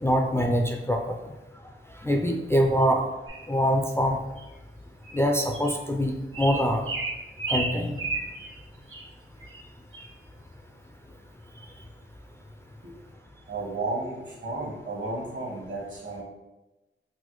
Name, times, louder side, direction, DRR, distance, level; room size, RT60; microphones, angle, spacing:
voice 1, 0.0-1.1 2.0-3.0 3.5-4.2 5.1-6.9 7.5-8.0, equal, 10° left, 2 dB, 0.3 m, -24 dB
sound 1, 3.3-3.5 4.4-4.5 5.0-5.2 5.5-5.7 6.3-8.6 8.9-9.0 9.4-9.6 9.9-10.1, right 3 dB, 80° right, 0.9 m, -33 dB
voice 2, 13.5-16.2, right 2 dB, 65° right, -3 dB, 1.2 m, -33 dB
4.1 x 2.0 x 3.0 m, 1.0 s
cardioid pair, 60°, 21 cm